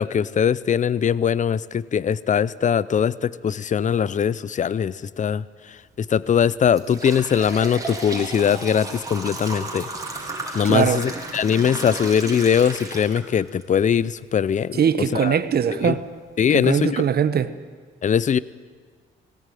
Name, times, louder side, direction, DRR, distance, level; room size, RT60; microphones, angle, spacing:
voice 1, 0.0-9.9 10.5-14.8 15.1-15.4 15.8-15.9 16.4-17.1 18.0-18.4, left 8 dB, 40° left, 20 dB, 0.6 m, -21 dB
sound 1, 5.8-6.0 6.5-13.6 14.1-14.2 15.0-15.1 15.6-15.7 16.2-16.4, right 2 dB, 15° right, 4.0 m, -34 dB
voice 2, 10.6-11.0 14.8-16.0 16.5-17.5, right 8 dB, 50° right, 13 dB, 1.2 m, -21 dB
18.5 x 17.5 x 9.2 m, 1.5 s
cardioid pair, 90°, 20 cm